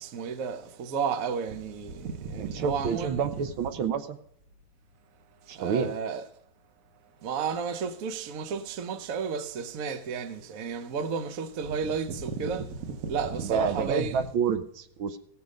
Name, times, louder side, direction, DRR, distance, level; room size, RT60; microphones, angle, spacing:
voice 1, 0.0-3.5 5.6-6.2 7.2-14.3, right 6 dB, 55° right, 1.0 m, -32 dB
voice 2, 2.4-4.2 5.5-5.9 13.4-15.2, right 6 dB, 75° right, 1.6 m, -29 dB
16.0 x 7.0 x 5.2 m
omnidirectional pair, 2.3 m